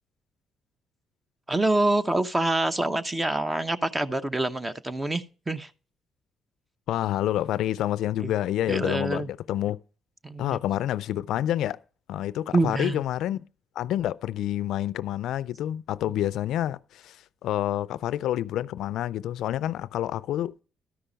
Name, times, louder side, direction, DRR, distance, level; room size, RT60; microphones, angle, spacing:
voice 1, 1.5-5.7 8.2-8.3 8.7-9.3 10.2-10.6 12.5-13.0, right 2 dB, 20° right, 0.8 m, -26 dB
voice 2, 6.9-9.8 10.4-11.8 12.1-13.4 13.8-20.6, left 12 dB, 80° left, 0.4 m, -28 dB
13.0 x 5.6 x 5.1 m
cardioid pair, 90°, 0 cm